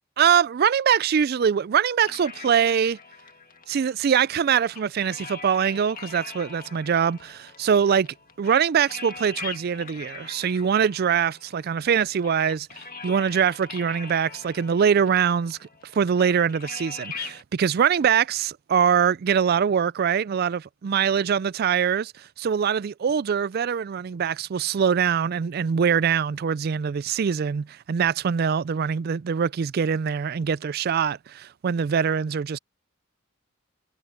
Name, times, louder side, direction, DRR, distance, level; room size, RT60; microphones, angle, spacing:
voice 1, 0.2-3.0 3.7-8.1 8.4-15.6 15.9-32.6, right 7 dB, 45° right, 0.3 m, -23 dB
sound 1, 2.0-17.4, left 4 dB, 40° left, 2.0 m, -42 dB
head